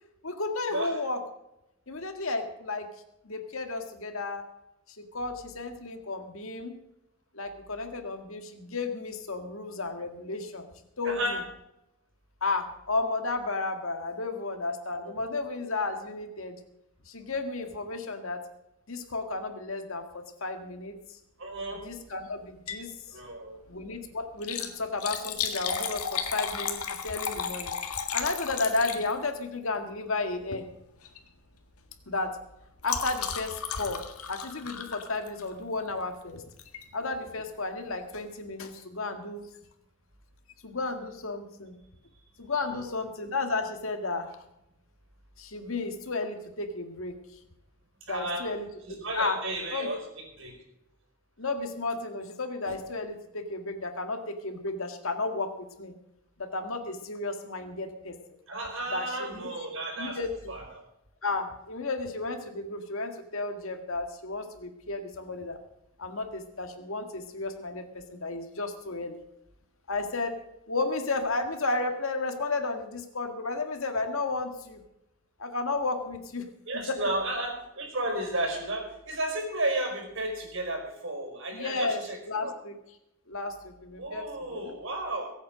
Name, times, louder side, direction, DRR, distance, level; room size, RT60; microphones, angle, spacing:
voice 1, 0.2-1.2 1.9-2.9 3.2-4.4 4.9-6.8 7.3-10.7 11.0-11.4 12.4-16.6 17.1-18.4 18.9-21.2 21.8-22.9 23.7-27.7 28.1-30.7 32.1-32.4 32.8-34.0 34.3-36.4 36.9-39.5 40.6-41.8 42.4-44.4 45.4-47.1 48.1-48.7 49.1-49.4 49.7-49.9 51.4-55.9 56.4-58.1 58.9-59.5 60.0-60.5 61.2-65.6 66.0-69.2 69.9-70.4 70.7-74.8 75.4-76.5 76.7-77.0 81.5-82.7 83.3-84.6, left 3 dB, 65° left, 6 dB, 1.9 m, -33 dB
voice 2, 11.0-11.4 15.0-15.4 21.4-21.8 23.1-23.6 24.6-24.7 42.6-43.0 48.0-48.5 49.0-50.0 50.4-50.5 58.5-60.2 60.5-60.8 76.7-82.5 84.0-85.3, right 1 dB, 55° right, 2 dB, 4.9 m, -33 dB
Liquid, 22.5-22.9 23.3-23.4 24.3-29.4 30.4-30.7 31.0-31.3 31.6-35.6 36.6-36.8 37.4-37.5 37.7-37.8, left 7 dB, 85° left, 1.8 m, -34 dB
22.5 x 8.6 x 5.1 m, 0.86 s
head